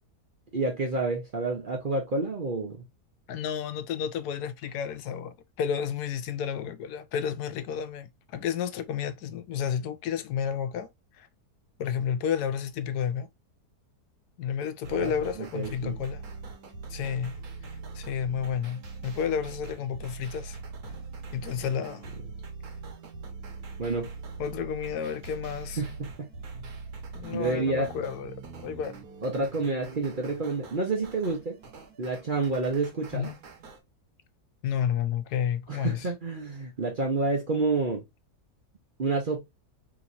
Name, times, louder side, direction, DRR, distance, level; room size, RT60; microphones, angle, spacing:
voice 1, 0.5-2.8 14.9-15.1 15.5-16.0 23.8-24.1 25.8-26.6 27.3-27.9 29.2-31.6 32.0-33.3 35.7-38.0 39.0-39.4, right 3 dB, 45° right, 0.7 m, -29 dB
voice 2, 3.3-10.9 11.2-11.3 11.8-13.3 14.4-16.2 16.9-17.3 17.9-20.6 21.3-22.1 24.4-25.8 27.1-28.4 28.6-28.9 33.1-33.4 34.6-36.1, left 8 dB, 80° left, 1.1 m, -31 dB
sound 1, 14.8-33.8, right 4 dB, 70° right, 1.5 m, -42 dB
3.4 x 2.9 x 2.5 m
omnidirectional pair, 1.7 m